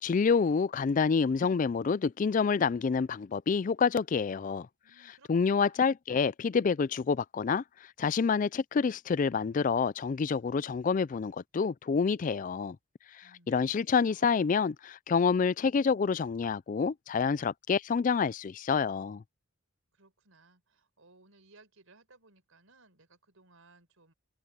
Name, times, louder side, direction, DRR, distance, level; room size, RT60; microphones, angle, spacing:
voice 1, 0.0-4.7 5.3-7.6 8.0-12.8 13.5-19.2, left 5 dB, 40° left, 0.3 m, -28 dB
voice 2, 4.8-5.8 13.2-14.3 19.9-24.1, right 3 dB, 80° right, 4.5 m, -61 dB
head